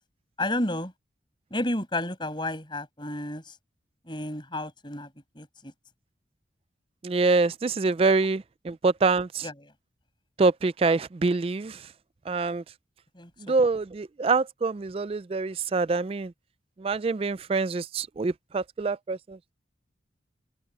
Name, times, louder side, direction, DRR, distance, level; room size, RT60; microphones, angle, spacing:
voice 1, 0.4-0.9 1.5-3.4 4.1-5.1 5.4-5.7 9.4-9.7 13.2-13.3, left 1 dB, 25° left, 6.0 m, -31 dB
voice 2, 7.0-9.4 10.4-11.8 12.3-12.6 13.5-16.3 16.8-19.4, right 3 dB, 30° right, 0.3 m, -25 dB
head